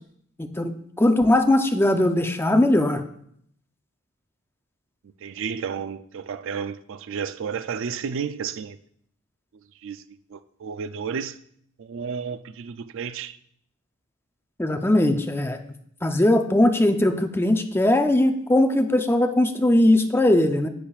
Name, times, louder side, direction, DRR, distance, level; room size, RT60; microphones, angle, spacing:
voice 1, 0.4-3.0 14.6-15.6 16.0-20.7, left 1 dB, 10° left, 0.6 m, -20 dB
voice 2, 5.2-8.8 9.8-11.4 11.8-13.4, right 6 dB, 65° right, 0.4 m, -32 dB
10.0 x 8.5 x 2.4 m
head